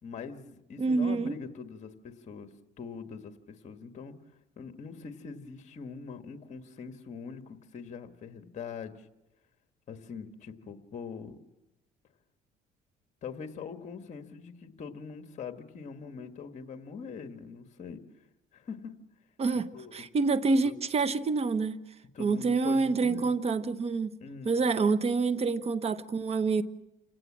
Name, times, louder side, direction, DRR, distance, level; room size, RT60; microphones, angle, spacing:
voice 1, 0.0-2.5 2.8-4.1 4.6-9.1 9.9-11.4 13.2-18.0 18.5-18.9 19.7-20.0 20.6-20.7 22.1-23.3 24.2-24.5, left 5 dB, 45° left, 1.7 m, -43 dB
voice 2, 0.8-1.3 19.4-21.8 22.2-24.2 24.4-26.6, right 4 dB, 40° right, 1.1 m, -27 dB
28.0 x 17.5 x 7.5 m
cardioid pair, 110°, 17 cm